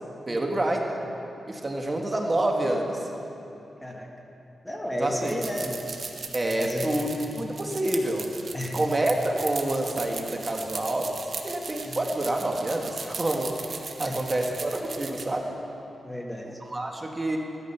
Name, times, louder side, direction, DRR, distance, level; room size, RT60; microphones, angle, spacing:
voice 1, 0.3-0.8 1.5-3.0 5.0-5.3 6.3-8.3 8.7-11.2 11.4-15.5 16.5-17.4, right 1 dB, 30° right, 1 dB, 1.6 m, -28 dB
voice 2, 4.6-5.8 6.6-6.9 8.5-8.8 11.8-12.0 14.0-14.2 16.0-16.5, left 1 dB, 5° left, 1 dB, 1.5 m, -33 dB
sound 1, 5.1-15.2, right 4 dB, 60° right, 1.2 m, -38 dB
15.5 x 12.0 x 5.8 m, 2.9 s
cardioid pair, 80°, 0 cm